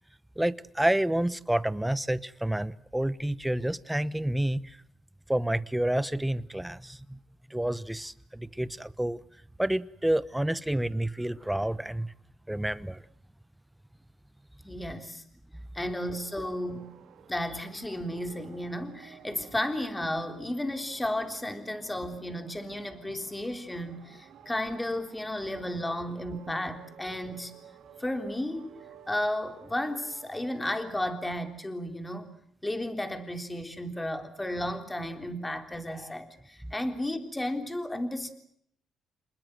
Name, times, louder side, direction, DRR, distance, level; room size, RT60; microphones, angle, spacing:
voice 1, 0.4-4.8 5.3-7.2 7.5-9.2 9.6-12.1 12.5-13.0, right 1 dB, 5° right, 1.0 m, -29 dB
voice 2, 14.6-15.2 15.7-16.9 17.3-27.5 28.0-28.7 29.1-32.3 32.6-38.3, left 1 dB, 10° left, 3.5 m, -33 dB
sound 1, 16.0-30.9, right 8 dB, 75° right, 3.3 m, -53 dB
27.5 x 21.0 x 7.8 m
cardioid pair, 90°, 0 cm